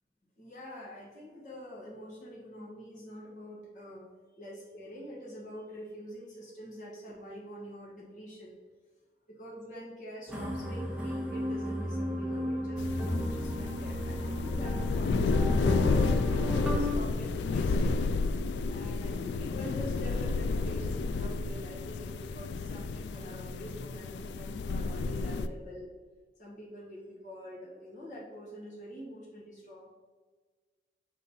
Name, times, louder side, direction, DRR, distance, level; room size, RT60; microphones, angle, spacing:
voice 1, 0.4-4.1 4.4-8.6 9.4-17.1 17.4-18.0 18.7-25.9 26.4-29.9, equal, 45° left, -5 dB, 1.4 m, -45 dB
sound 1, 10.3-16.9, equal, 5° right, 0.8 m, -34 dB
sound 2, 12.8-25.5, left 3 dB, 80° left, 0.3 m, -31 dB
6.3 x 3.6 x 4.1 m, 1.4 s
head